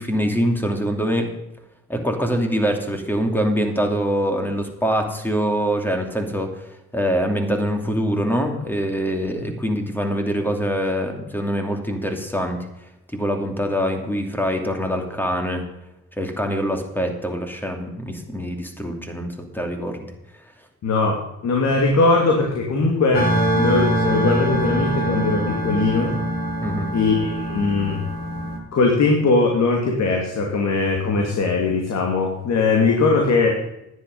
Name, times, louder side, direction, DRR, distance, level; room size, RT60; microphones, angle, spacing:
voice 1, 0.0-1.3 1.9-6.7 6.9-12.6 13.1-15.7 16.2-20.1 26.6-26.9, equal, 5° left, 4 dB, 2.7 m, -24 dB
voice 2, 20.8-26.1 26.9-28.0 28.7-33.5, left 3 dB, 60° left, 1 dB, 2.6 m, -20 dB
sound 1, 23.1-28.6, right 1 dB, 30° left, 3.9 m, -24 dB
11.0 x 10.0 x 5.5 m, 0.89 s
cardioid pair, 90°, 30 cm